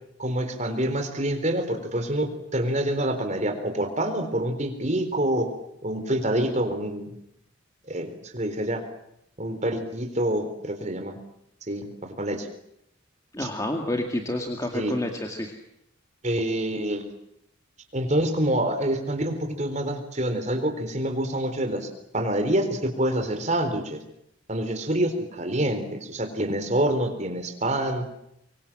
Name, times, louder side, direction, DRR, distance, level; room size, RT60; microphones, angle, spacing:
voice 1, 0.2-5.5 5.8-7.1 7.9-8.8 9.4-11.2 11.7-12.5 13.4-13.5 14.7-14.9 16.2-17.0 17.9-24.0 24.5-28.1, right 1 dB, 35° right, 6 dB, 4.1 m, -27 dB
voice 2, 13.3-15.5, left 1 dB, 15° left, 3 dB, 2.1 m, -29 dB
25.0 x 23.5 x 7.5 m, 0.77 s
head